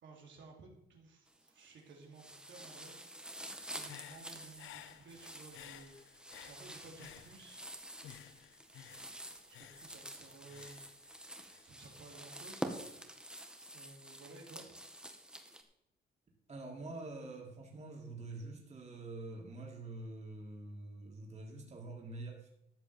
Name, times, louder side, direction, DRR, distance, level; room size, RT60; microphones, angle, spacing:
voice 1, 0.0-3.0 3.7-7.6 9.5-10.8 11.6-12.7 13.7-14.7, right 3 dB, 70° right, 0 dB, 3.2 m, -55 dB
sound 1, 1.3-1.8 2.1-15.6, right 1 dB, 5° right, 1.6 m, -48 dB
Human voice / Breathing, 3.5-7.7 8.0-11.6, left 11 dB, 85° left, 0.8 m, -55 dB
voice 2, 16.5-22.5, right 2 dB, 35° right, -1 dB, 3.3 m, -46 dB
13.5 x 5.0 x 7.9 m, 0.81 s
cardioid pair, 90°, 20 cm